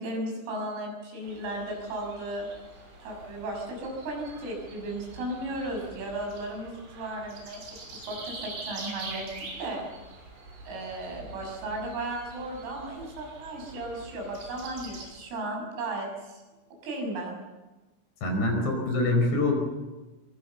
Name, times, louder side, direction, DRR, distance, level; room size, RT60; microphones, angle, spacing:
voice 1, 0.0-2.5 3.0-7.6 7.9-9.3 9.6-9.9 10.7-16.4 16.8-17.4, right 1 dB, 90° right, 1 dB, 9.2 m, -35 dB
sound 1, 1.2-15.1, right 3 dB, 65° right, 8.2 m, -45 dB
voice 2, 18.2-19.5, left 2 dB, 60° left, 3 dB, 6.7 m, -25 dB
24.0 x 23.0 x 7.1 m, 1.2 s
omnidirectional pair, 5.9 m